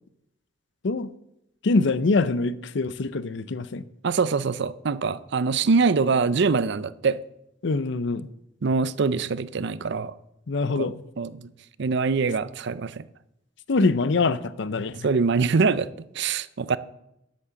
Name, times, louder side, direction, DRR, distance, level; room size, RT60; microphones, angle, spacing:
voice 1, 1.6-3.8 7.6-8.3 10.5-11.0 13.7-15.0, left 3 dB, 65° left, 0.6 m, -24 dB
voice 2, 4.0-7.2 8.6-10.2 10.8-11.5 11.8-13.0 15.0-15.9 16.1-16.8, right 4 dB, 65° right, 0.5 m, -24 dB
10.0 x 8.5 x 7.0 m
head